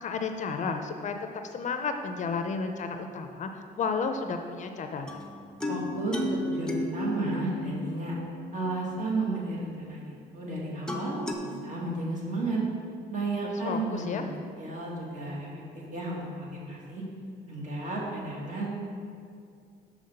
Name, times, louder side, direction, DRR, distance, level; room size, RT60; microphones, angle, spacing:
voice 1, 0.0-1.1 1.5-5.2 13.4-14.2, left 5 dB, 45° left, 6 dB, 0.5 m, -32 dB
sound 1, 5.1-9.0 10.9-11.3, left 1 dB, 5° left, 0.7 m, -34 dB
voice 2, 5.7-8.2 8.5-12.6 13.1-14.3 14.6-17.0 17.5-18.7, right 2 dB, 45° right, -4 dB, 2.0 m, -33 dB
6.1 x 5.6 x 6.5 m, 2.3 s
cardioid pair, 130°, 18 cm